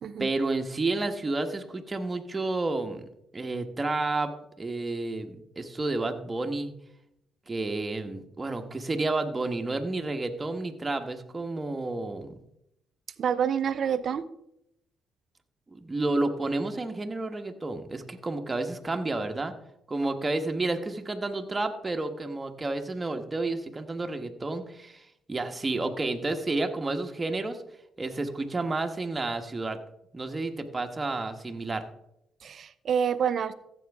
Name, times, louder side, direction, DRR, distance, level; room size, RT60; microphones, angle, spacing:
voice 1, 0.2-3.0 3.3-4.3 4.6-6.7 7.5-12.3 15.7-19.5 19.9-27.6 28.0-29.8 30.1-31.9, right 2 dB, 25° right, 5 dB, 1.4 m, -30 dB
voice 2, 13.2-14.2 32.4-33.5, right 7 dB, 60° right, 15 dB, 0.6 m, -27 dB
14.5 x 8.1 x 3.6 m, 0.80 s
hypercardioid pair, 50°, 0 cm